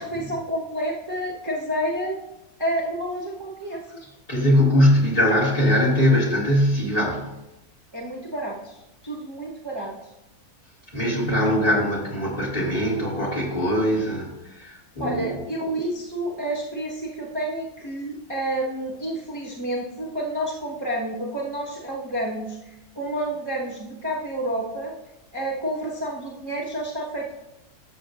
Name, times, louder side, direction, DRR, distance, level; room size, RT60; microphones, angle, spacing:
voice 1, 0.0-2.2 2.6-3.8 7.9-8.8 9.0-9.9 15.0-24.9 25.3-27.4, right 1 dB, 20° right, -5 dB, 1.1 m, -29 dB
voice 2, 4.3-7.3 10.9-15.3, equal, 35° left, -4 dB, 2.3 m, -21 dB
12.5 x 7.3 x 2.6 m, 0.93 s
omnidirectional pair, 1.7 m